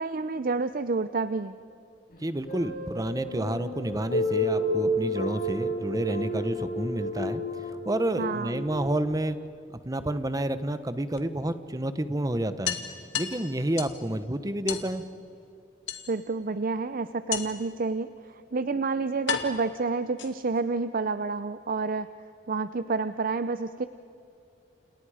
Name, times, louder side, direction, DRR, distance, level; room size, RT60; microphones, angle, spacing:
voice 1, 0.0-1.6 8.2-8.7 16.1-22.1 22.5-23.9, right 4 dB, 50° right, 12 dB, 0.6 m, -29 dB
sound 1, 2.1-8.6, equal, 55° left, 5.7 m, -30 dB
voice 2, 2.2-9.4 9.8-12.8 13.1-15.0, right 1 dB, 20° right, 11 dB, 1.0 m, -30 dB
sound 2, 8.6-9.7 11.2-11.3 11.6-11.7 12.0-12.1 12.6-14.0 14.7-14.9 15.9-16.4 17.3-17.7 18.6-18.7 19.3-20.6, left 8 dB, 90° left, 2.2 m, -34 dB
29.0 x 29.0 x 5.0 m, 2.7 s
head